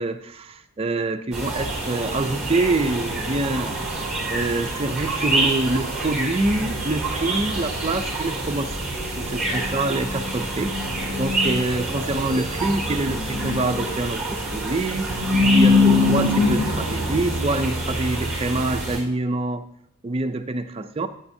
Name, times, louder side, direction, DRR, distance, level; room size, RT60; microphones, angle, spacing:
voice 1, 0.0-3.8 4.3-8.8 9.2-10.8 11.2-15.1 15.4-15.8 16.1-19.7 20.0-21.1, right 2 dB, 25° right, 0.4 m, -26 dB
sound 1, 1.3-19.0, left 1 dB, 5° right, 3.2 m, -24 dB
11.5 x 7.1 x 2.7 m
head